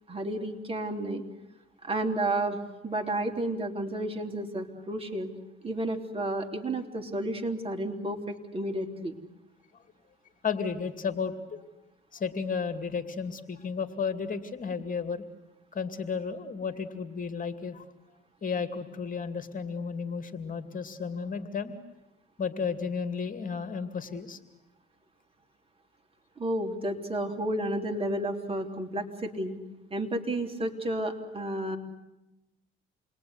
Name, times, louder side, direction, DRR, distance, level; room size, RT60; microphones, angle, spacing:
voice 1, 0.1-1.2 1.8-5.3 5.6-9.2 26.4-29.6 29.9-31.8, right 1 dB, 30° right, 4 dB, 3.5 m, -31 dB
voice 2, 10.4-11.6 12.1-15.2 15.7-17.8 18.4-21.7 22.4-24.4, left 5 dB, 45° left, 10 dB, 2.6 m, -33 dB
28.5 x 21.5 x 9.7 m, 0.97 s
cardioid pair, 90°, 20 cm